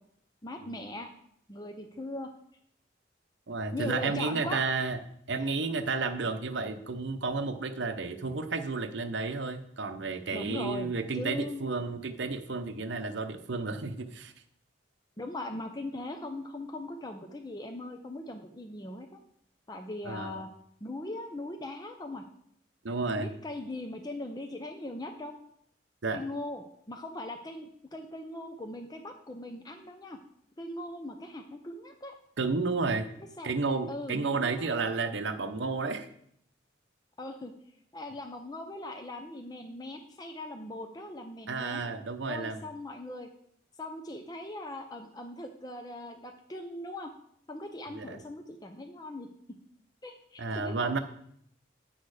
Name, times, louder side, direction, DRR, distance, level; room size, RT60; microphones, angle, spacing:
voice 1, 0.4-1.1 1.5-2.3 3.7-4.6 10.3-11.6 15.2-19.2 19.7-20.5 20.8-22.3 23.2-25.4 26.1-30.2 30.6-32.1 33.2-33.5 33.9-34.7 37.2-37.5 37.9-41.9 42.3-43.3 43.8-47.1 47.5-49.3 50.0-50.9, left 1 dB, 20° left, 4 dB, 0.6 m, -40 dB
voice 2, 3.5-5.0 5.3-14.3 20.0-20.4 22.8-23.3 26.0-26.2 32.4-33.1 33.4-36.1 41.5-42.6 47.9-48.2 50.4-51.0, right 4 dB, 65° right, 8 dB, 0.8 m, -32 dB
9.2 x 6.4 x 4.9 m, 0.69 s
head